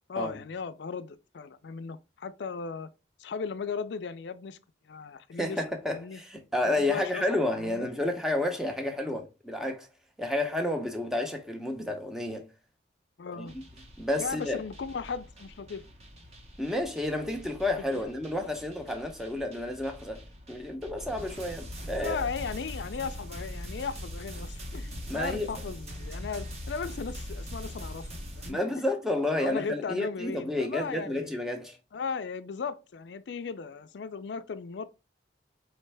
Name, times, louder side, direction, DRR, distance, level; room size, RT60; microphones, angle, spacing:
voice 1, 0.1-2.9 3.2-4.6 4.9-5.6 5.9-6.2 6.8-7.3 7.6-7.8 9.0-9.2 13.2-13.5 14.2-15.8 17.8-18.1 22.0-28.1 28.4-28.6 29.4-31.3 31.9-34.9, left 5 dB, 65° left, 0.4 m, -36 dB
voice 2, 5.3-9.9 10.2-12.5 13.4-13.5 14.0-14.6 16.6-20.2 20.5-22.2 25.1-25.5 28.5-31.8, left 1 dB, ahead, 0.7 m, -30 dB
sound 1, 13.5-28.5, equal, 35° right, 0.9 m, -42 dB
4.4 x 3.2 x 3.3 m
head